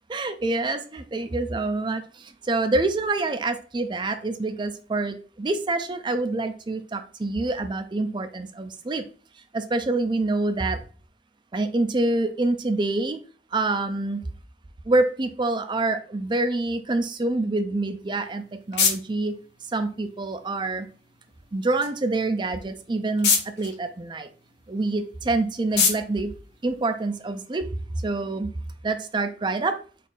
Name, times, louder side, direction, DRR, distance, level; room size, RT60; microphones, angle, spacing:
voice 1, 0.1-2.0 2.5-9.0 9.5-10.8 11.5-13.2 13.5-14.2 14.9-19.3 19.7-20.9 21.5-24.3 24.7-26.3 26.6-27.7 28.0-28.5 28.8-29.8, right 2 dB, 25° right, 9 dB, 0.4 m, -26 dB
sound 1, 18.0-27.4, left 5 dB, 80° left, 1.2 m, -31 dB
4.1 x 2.7 x 3.8 m, 0.39 s
head